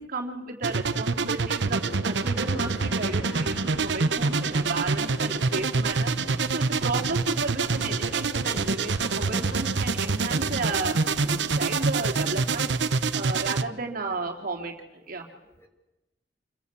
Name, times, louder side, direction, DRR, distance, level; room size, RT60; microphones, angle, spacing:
voice 1, 0.0-6.2 6.5-12.8 13.1-15.3, right 3 dB, 55° right, 1 dB, 3.3 m, -33 dB
sound 1, 0.6-13.6, right 4 dB, 75° right, 1.0 m, -26 dB
sound 2, 1.6-12.7, equal, 80° left, 7.9 m, -42 dB
voice 2, 15.0-15.7, left 1 dB, 15° left, 4 dB, 3.9 m, -60 dB
28.5 x 23.0 x 8.4 m, 1.0 s
head